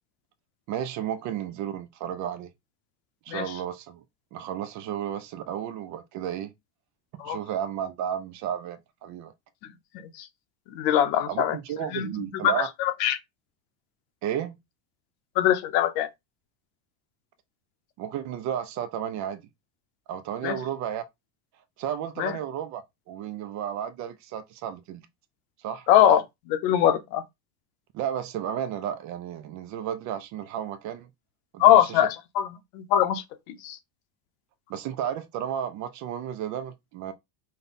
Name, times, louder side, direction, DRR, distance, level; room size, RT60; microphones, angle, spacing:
voice 1, 0.7-2.5 3.3-4.0 4.3-6.5 7.2-9.3 11.3-12.7 14.2-14.6 18.0-19.5 20.1-21.0 21.8-25.1 25.6-25.9 27.9-31.1 31.5-32.1 34.7-37.1, right 9 dB, 40° right, 0.4 m, -33 dB
voice 2, 10.7-11.6 11.9-12.1 12.4-12.5 12.8-13.2 15.4-16.1 20.4-20.6 22.2-22.3 25.9-26.2 26.5-27.2 31.6-32.5 32.7-33.8, left 11 dB, 65° left, 0.9 m, -22 dB
5.3 x 2.2 x 4.0 m
cardioid pair, 160°, 50 cm